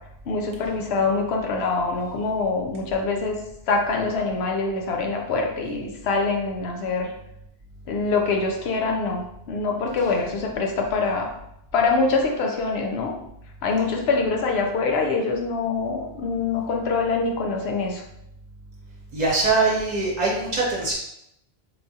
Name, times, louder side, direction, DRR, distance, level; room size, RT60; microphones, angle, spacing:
voice 1, 0.3-3.4 3.7-7.1 7.9-9.2 9.5-11.3 11.7-13.2 13.6-18.0, left 4 dB, 85° left, 1 dB, 0.9 m, -24 dB
voice 2, 19.1-20.9, right 3 dB, 45° right, -4 dB, 1.0 m, -22 dB
4.3 x 2.3 x 2.7 m, 0.80 s
omnidirectional pair, 1.0 m